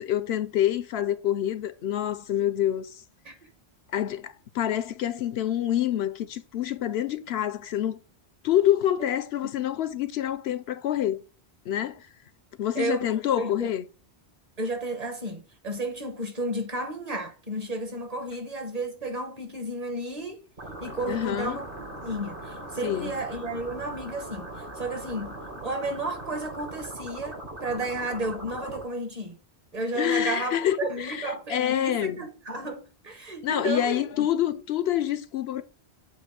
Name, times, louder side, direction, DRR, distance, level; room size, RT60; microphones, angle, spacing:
voice 1, 0.0-3.0 3.9-8.0 8.4-11.2 11.7-12.1 12.6-13.8 21.1-21.6 22.8-23.2 29.9-32.2 33.4-35.6, left 11 dB, 70° left, 0.8 m, -27 dB
voice 2, 12.7-13.1 13.4-13.7 14.6-20.5 20.8-21.7 22.0-25.4 25.6-29.4 29.7-34.3, right 2 dB, 35° right, 1.3 m, -33 dB
sound 1, 20.6-28.8, right 1 dB, 55° right, 2.1 m, -40 dB
8.1 x 2.7 x 5.8 m
omnidirectional pair, 1.1 m